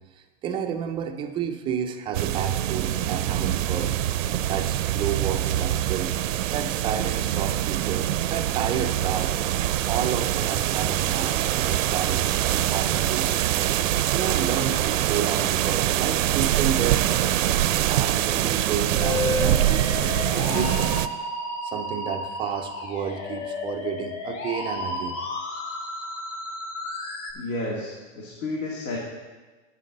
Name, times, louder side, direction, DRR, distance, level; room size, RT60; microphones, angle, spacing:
voice 1, 0.2-3.9 4.5-6.1 6.5-9.4 9.9-13.5 14.1-17.1 17.8-20.9 21.6-25.2, right 7 dB, 15° right, 6 dB, 0.3 m, -31 dB
sound 1, 2.1-21.1, right 12 dB, 80° right, 0.6 m, -24 dB
Musical instrument, 18.9-27.3, left 2 dB, 45° left, 1.7 m, -32 dB
voice 2, 27.3-29.0, left 2 dB, 70° left, -4 dB, 2.1 m, -31 dB
9.1 x 8.6 x 3.9 m, 1.3 s
hypercardioid pair, 125°, 38 cm